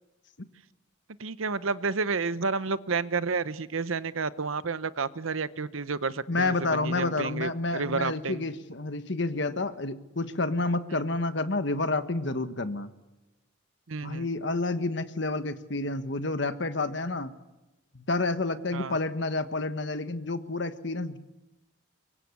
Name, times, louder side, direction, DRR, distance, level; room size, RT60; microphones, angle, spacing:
voice 1, 1.2-8.5 13.9-14.3 18.7-19.0, right 4 dB, 80° right, 15 dB, 0.9 m, -30 dB
voice 2, 6.3-12.9 14.0-17.3 17.9-21.2, left 2 dB, 60° left, 11 dB, 1.3 m, -29 dB
24.0 x 23.5 x 8.4 m, 1.0 s
head